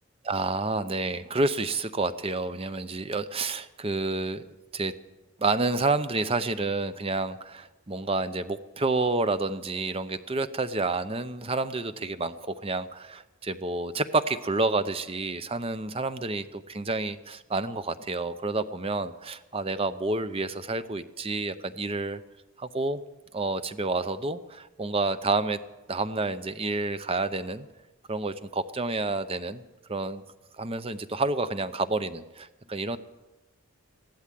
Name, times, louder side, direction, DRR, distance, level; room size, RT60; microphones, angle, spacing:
voice 1, 0.2-4.4 4.7-4.9 5.4-22.2 22.6-23.0 23.3-25.6 25.9-27.7 28.1-29.6 29.9-30.2 30.6-33.0, right 3 dB, 25° right, 12 dB, 0.6 m, -29 dB
16.0 x 12.0 x 7.6 m, 1.1 s
head